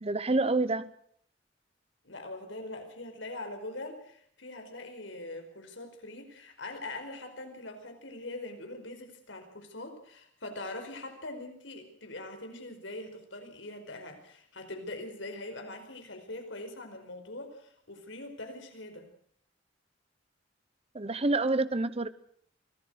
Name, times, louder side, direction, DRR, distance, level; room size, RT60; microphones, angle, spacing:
voice 1, 0.0-0.9 20.9-22.1, right 2 dB, 30° right, 15 dB, 0.9 m, -27 dB
voice 2, 2.0-19.1, left 2 dB, 80° left, 6 dB, 4.9 m, -42 dB
24.5 x 17.5 x 6.4 m, 0.64 s
head